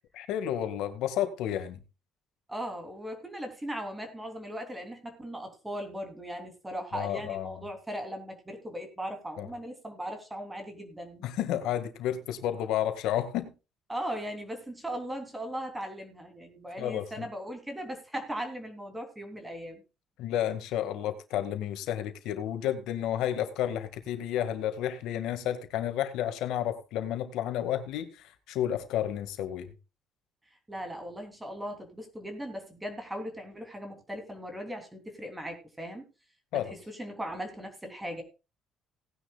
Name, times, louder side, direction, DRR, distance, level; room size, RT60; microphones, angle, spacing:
voice 1, 0.1-1.8 6.9-7.6 9.4-9.5 11.2-13.5 16.8-17.3 20.2-29.7 36.5-36.7, left 11 dB, 80° left, 9 dB, 1.9 m, -31 dB
voice 2, 2.5-11.2 13.9-19.8 30.7-36.0 36.9-38.2, equal, 10° right, 5 dB, 3.2 m, -38 dB
18.5 x 10.5 x 2.4 m, 0.29 s
cardioid pair, 155°, 0 cm